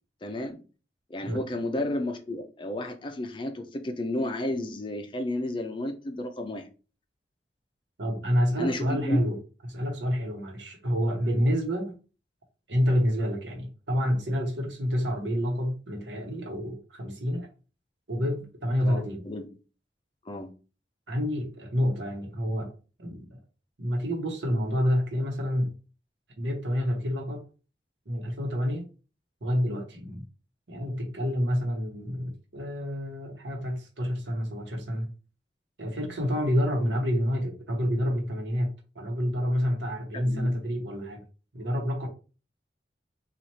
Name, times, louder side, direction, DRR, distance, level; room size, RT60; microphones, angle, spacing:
voice 1, 0.2-0.6 1.1-6.7 8.6-9.2 18.8-19.5 20.3-20.5 40.1-40.5, left 1 dB, 30° left, 7 dB, 0.4 m, -32 dB
voice 2, 8.0-9.4 9.7-11.9 12.7-17.5 18.1-19.2 21.1-22.7 23.0-23.3 23.8-25.7 26.4-27.4 28.1-28.9 29.4-30.2 30.7-35.1 35.8-41.2 41.5-42.1, equal, 90° right, 1 dB, 1.0 m, -28 dB
3.0 x 2.4 x 4.1 m, 0.35 s
head